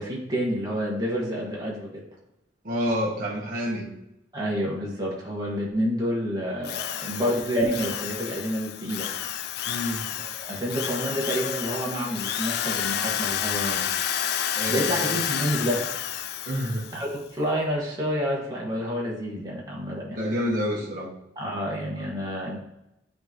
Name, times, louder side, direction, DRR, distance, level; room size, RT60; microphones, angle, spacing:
voice 1, 0.0-2.0 4.3-9.1 10.3-13.9 14.7-15.8 16.9-20.2 21.3-22.6, equal, 20° right, -4 dB, 1.6 m, -28 dB
voice 2, 2.6-3.9 9.7-10.1 14.5-15.1 16.5-16.9 20.1-21.1, equal, 50° right, -3 dB, 1.2 m, -28 dB
Drill, 6.7-17.1, left 10 dB, 60° left, 0.3 m, -30 dB
8.7 x 3.8 x 3.0 m, 0.88 s
head